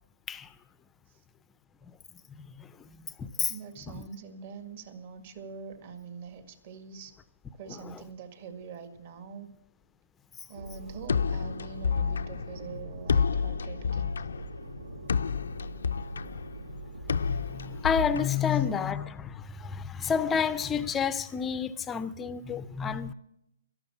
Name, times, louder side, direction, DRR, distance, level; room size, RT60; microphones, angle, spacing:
voice 1, 2.4-3.6 3.9-4.1 7.7-8.0 17.1-23.1, left 7 dB, 15° left, 0.5 m, -30 dB
voice 2, 3.5-7.1 7.6-9.5 10.5-14.1, right 6 dB, 45° right, 1.9 m, -44 dB
sound 1, 10.5-17.8, right 3 dB, 90° right, 0.9 m, -43 dB
sound 2, 11.1-19.0, left 6 dB, 75° left, 0.5 m, -30 dB
12.5 x 12.0 x 7.1 m
hypercardioid pair, 150°, 0 cm